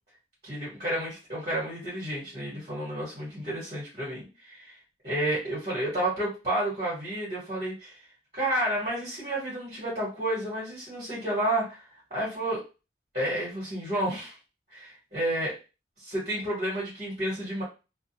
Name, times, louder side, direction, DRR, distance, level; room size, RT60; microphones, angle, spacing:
voice 1, 0.4-4.7 5.0-7.9 8.3-11.8 12.1-12.7 13.1-14.3 14.7-15.5 16.0-17.6, right 1 dB, 40° right, -6 dB, 1.2 m, -31 dB
2.3 x 2.2 x 2.7 m, 0.30 s
head